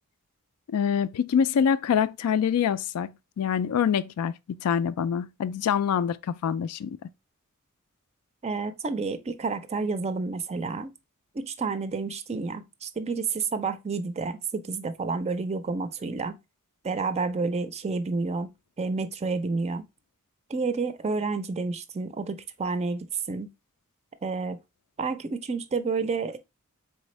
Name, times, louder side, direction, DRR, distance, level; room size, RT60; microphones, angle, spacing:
voice 1, 0.7-7.0, left 7 dB, 80° left, 0.3 m, -25 dB
voice 2, 8.4-10.9 11.3-16.4 16.8-18.5 18.8-19.9 20.5-23.5 24.2-24.6 25.0-26.4, right 4 dB, 30° right, 0.4 m, -30 dB
4.1 x 3.5 x 3.1 m
head